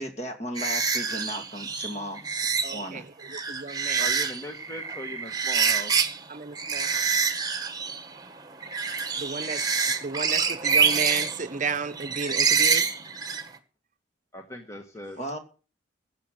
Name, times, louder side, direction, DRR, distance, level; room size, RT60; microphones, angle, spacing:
voice 1, 0.0-2.3 2.7-3.0 15.2-15.4, equal, 35° left, 2.5 m, -35 dB
sound 1, 0.6-2.9 3.2-6.3 6.5-13.6, right 6 dB, 20° right, 1.4 m, -26 dB
voice 2, 2.6-4.1 6.3-7.1 9.2-9.6 10.0-12.9, right 4 dB, 40° right, 0.9 m, -33 dB
voice 3, 4.0-5.9 14.3-15.2, left 1 dB, 15° left, 1.4 m, -39 dB
15.5 x 7.3 x 7.7 m
head